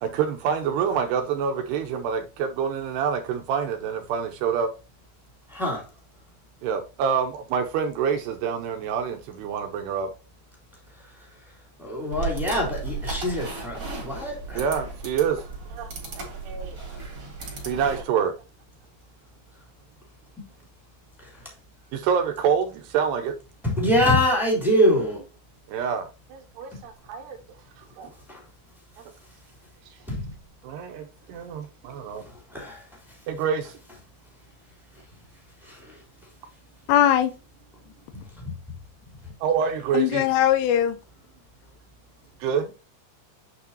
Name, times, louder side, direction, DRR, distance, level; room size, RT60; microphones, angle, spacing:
voice 1, 0.0-4.7 6.6-10.1 14.6-15.4 15.7-16.8 17.6-18.3 21.9-23.3 25.7-27.4 28.0-28.1 30.6-32.2 33.3-33.7 39.4-40.3 42.4-42.7, right 7 dB, 85° right, 2.4 m, -27 dB
voice 2, 5.5-5.9 11.8-14.6 23.6-25.2 28.3-28.4 30.1-30.3 32.5-32.8 35.6-36.0 38.4-38.5, equal, ahead, 2.2 m, -24 dB
sound 1, 12.1-18.0, right 4 dB, 25° right, 2.8 m, -35 dB
voice 3, 36.9-37.3 39.9-41.0, left 11 dB, 80° left, 3.2 m, -20 dB
8.6 x 6.0 x 2.8 m
omnidirectional pair, 5.8 m